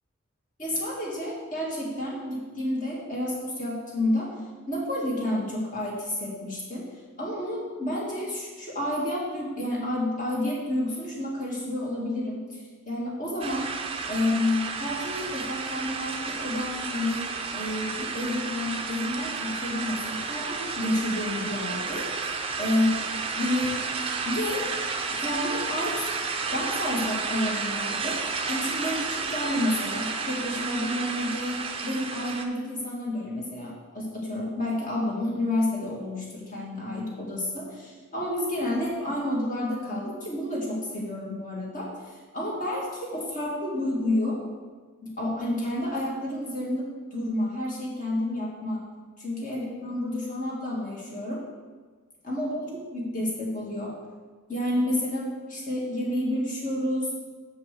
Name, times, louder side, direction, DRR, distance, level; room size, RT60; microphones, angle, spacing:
voice 1, 0.6-4.3 4.7-6.9 7.2-13.7 14.1-22.1 22.6-22.9 23.4-23.7 24.3-24.6 25.2-26.1 26.5-41.9 42.3-44.4 45.0-48.8 49.2-51.4 52.2-53.9 54.5-57.1, left 1 dB, 35° left, -4 dB, 2.1 m, -30 dB
sound 1, 13.4-32.5, right 4 dB, 25° right, 0.5 m, -32 dB
6.3 x 5.6 x 6.8 m, 1.5 s
head